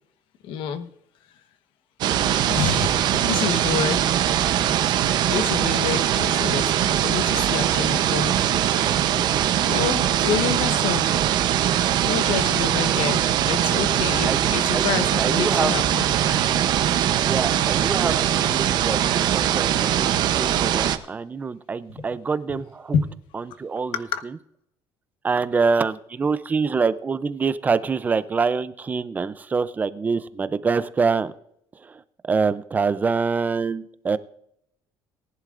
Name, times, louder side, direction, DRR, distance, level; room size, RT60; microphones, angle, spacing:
voice 1, 0.4-0.9 2.5-4.0 4.5-8.4 9.1-9.2 9.6-11.2 12.0-16.0 16.5-16.6 22.0-22.1 22.9-23.1 23.9-24.2, left 7 dB, 70° left, 1.1 m, -28 dB
sound 1, 2.0-21.0, right 11 dB, 50° right, 0.7 m, -21 dB
voice 2, 14.3-15.7 17.2-23.0 23.3-24.4 25.2-31.3 31.8-34.2, right 5 dB, 20° right, 0.5 m, -25 dB
19.0 x 11.0 x 2.5 m
cardioid pair, 155°, 9 cm